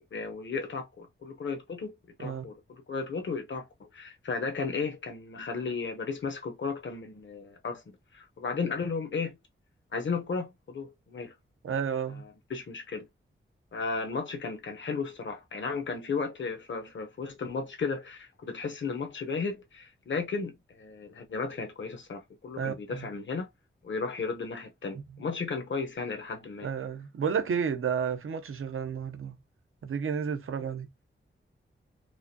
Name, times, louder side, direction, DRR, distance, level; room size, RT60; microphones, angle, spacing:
voice 1, 0.1-7.8 8.1-9.4 9.9-11.3 12.1-13.1 13.7-23.5 23.8-26.7, left 4 dB, 65° left, 0.9 m, -34 dB
voice 2, 11.6-12.2 22.6-23.1 24.9-25.0 26.6-29.4 29.8-30.9, right 7 dB, 90° right, 0.7 m, -31 dB
4.7 x 2.2 x 2.7 m
wide cardioid pair, 125°, 21 cm